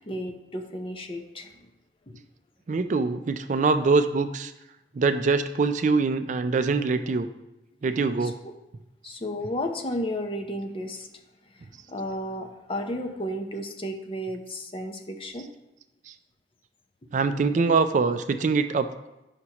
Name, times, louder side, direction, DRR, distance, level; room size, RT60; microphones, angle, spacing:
voice 1, 0.0-1.6 2.1-2.2 8.2-8.5 9.0-11.1 11.5-15.5, equal, 30° left, 4 dB, 0.7 m, -33 dB
voice 2, 2.7-4.5 4.9-7.3 7.8-8.4 16.1-16.2 17.1-18.9, right 4 dB, 45° right, 9 dB, 0.4 m, -23 dB
9.5 x 5.8 x 2.9 m, 0.95 s
head